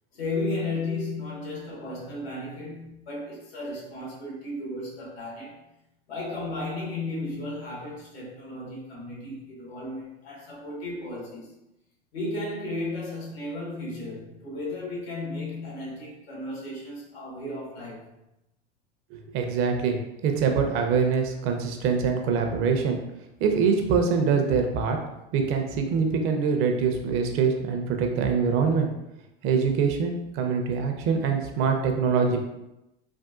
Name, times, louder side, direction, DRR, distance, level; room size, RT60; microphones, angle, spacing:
voice 1, 0.1-5.6 6.1-11.5 12.1-18.1, left 2 dB, 85° left, -4 dB, 1.4 m, -34 dB
voice 2, 19.1-20.0 20.2-23.0 23.4-25.0 25.3-28.9 29.4-32.4, right 5 dB, 45° right, 4 dB, 0.6 m, -24 dB
3.5 x 2.4 x 2.4 m, 0.91 s
hypercardioid pair, 110°, 30 cm